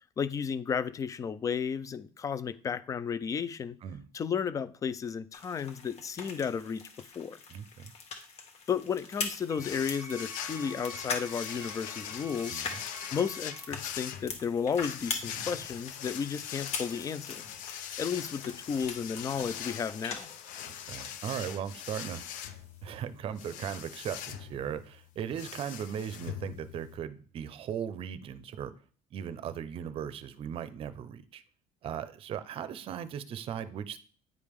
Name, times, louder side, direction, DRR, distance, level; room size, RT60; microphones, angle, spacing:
voice 1, 0.2-3.8 4.1-6.8 7.1-7.4 8.7-12.6 13.1-17.4 18.0-20.3, left 6 dB, 25° left, 16 dB, 0.4 m, -33 dB
sound 1, 5.3-21.6 21.9-23.0, left 5 dB, 50° left, 1.4 m, -43 dB
voice 2, 7.5-7.9 12.5-12.8 20.6-22.3 22.8-28.7 29.1-31.4 31.8-34.0, right 8 dB, 45° right, 13 dB, 0.6 m, -38 dB
Wind instrument woodwind instrument, 9.5-13.8, right 2 dB, 15° right, 1.4 m, -48 dB
sound 2, 9.6-27.0, left 10 dB, 75° left, 0.7 m, -42 dB
9.4 x 5.0 x 3.6 m, 0.42 s
cardioid pair, 150°, 14 cm